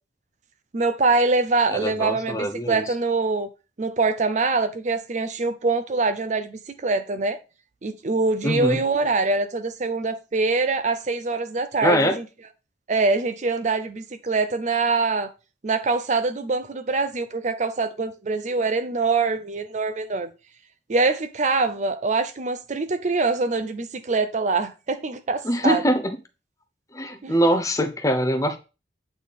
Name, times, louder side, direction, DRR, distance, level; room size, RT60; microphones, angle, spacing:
voice 1, 0.7-3.5 3.8-7.4 7.8-12.2 12.9-15.3 15.6-20.3 20.9-25.8 27.2-27.3, right 3 dB, 40° right, 0.5 m, -24 dB
voice 2, 1.7-2.8 8.4-8.8 11.8-12.2 25.4-26.2 26.9-28.6, equal, 15° left, 0.7 m, -23 dB
8.4 x 4.0 x 3.4 m
head